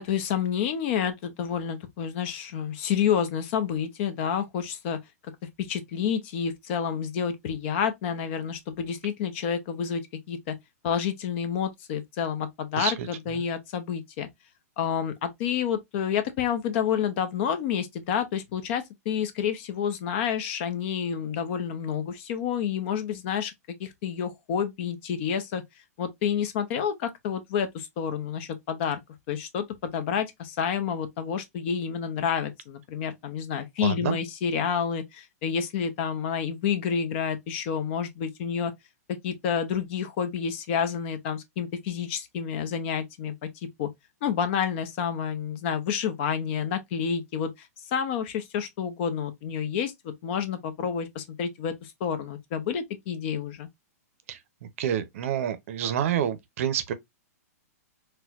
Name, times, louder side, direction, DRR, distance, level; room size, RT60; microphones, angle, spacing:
voice 1, 0.0-5.0 5.6-10.0 10.3-10.5 10.8-14.3 14.8-23.5 23.8-25.6 26.0-29.0 29.3-38.7 39.2-43.5 43.8-43.9 44.2-47.5 47.9-53.7, left 8 dB, 45° left, 0.7 m, -29 dB
voice 2, 33.8-34.2 54.3-54.4 54.8-56.9, right 9 dB, 55° right, 0.6 m, -28 dB
4.2 x 2.2 x 2.4 m
hypercardioid pair, 135°, 9 cm